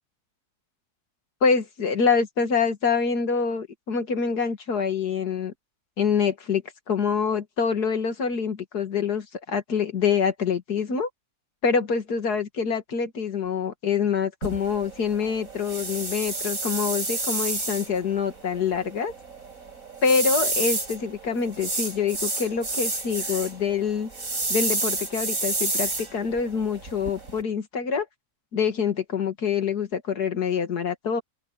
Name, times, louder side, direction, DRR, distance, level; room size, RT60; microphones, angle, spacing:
voice 1, 1.4-5.5 6.0-6.6 6.9-11.1 11.6-19.1 20.0-24.1 24.5-28.1 28.5-31.2, left 6 dB, 85° left, 2.5 m, -25 dB
sound 1, 14.4-27.4, right 2 dB, 60° right, 5.8 m, -30 dB
open air
omnidirectional pair, 1.6 m